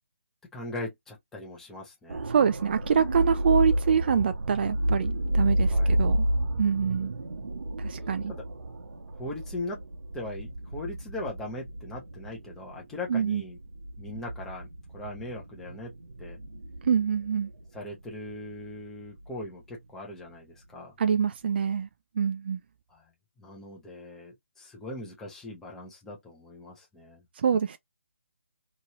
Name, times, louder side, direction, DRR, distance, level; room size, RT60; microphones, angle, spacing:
voice 1, 0.5-2.2 5.7-5.9 8.3-8.4 9.2-9.8 10.1-13.6 14.0-14.7 14.9-15.9 16.2-16.4 17.7-20.9 22.9-23.0 23.4-27.2, left 2 dB, 5° left, 0.7 m, -40 dB
sound 1, 2.1-20.0 20.3-20.5, equal, 70° right, 1.1 m, -31 dB
voice 2, 2.3-6.3 6.6-7.1 7.8-8.3 13.1-13.4 16.8-17.5 21.0-21.9 22.2-22.6 27.4-27.8, right 7 dB, 45° right, 0.3 m, -25 dB
3.0 x 2.6 x 2.9 m
hypercardioid pair, 155°, 7 cm